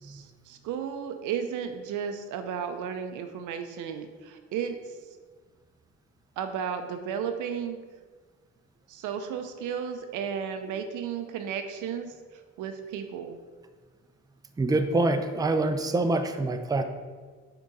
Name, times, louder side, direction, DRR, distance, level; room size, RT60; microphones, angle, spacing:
voice 1, 0.0-4.8 6.4-7.8 8.9-12.1 12.6-13.4, right 7 dB, 85° right, 7 dB, 0.6 m, -34 dB
voice 2, 14.6-16.8, right 2 dB, 15° right, 7 dB, 0.5 m, -25 dB
6.0 x 3.8 x 4.1 m, 1.5 s
cardioid pair, 90°, 30 cm